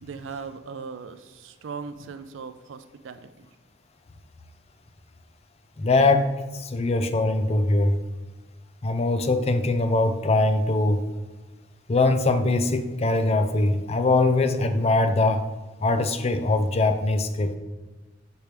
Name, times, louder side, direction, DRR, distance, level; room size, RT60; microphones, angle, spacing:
voice 1, 0.0-3.5, right 5 dB, 80° right, 9 dB, 0.4 m, -39 dB
voice 2, 5.8-8.0 8.8-11.0 11.9-15.4 15.8-17.5, left 2 dB, 35° left, 8 dB, 0.5 m, -22 dB
6.8 x 4.5 x 3.3 m, 1.2 s
head